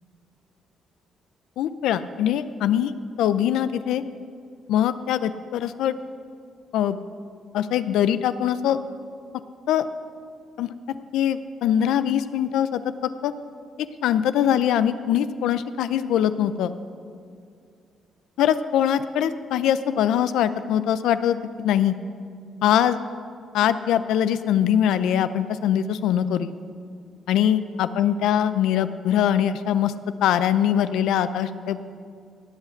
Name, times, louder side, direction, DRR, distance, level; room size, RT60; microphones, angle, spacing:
voice 1, 1.6-4.0 4.7-6.0 6.7-7.0 7.5-8.8 9.7-9.9 10.6-10.7 11.1-12.8 13.2-13.3 14.0-16.7 18.4-21.9 22.6-23.0 23.5-26.5 27.3-29.9 30.2-31.8, left 10 dB, 85° left, 13 dB, 0.5 m, -22 dB
16.5 x 5.7 x 7.9 m, 2.3 s
cardioid pair, 90°, 0 cm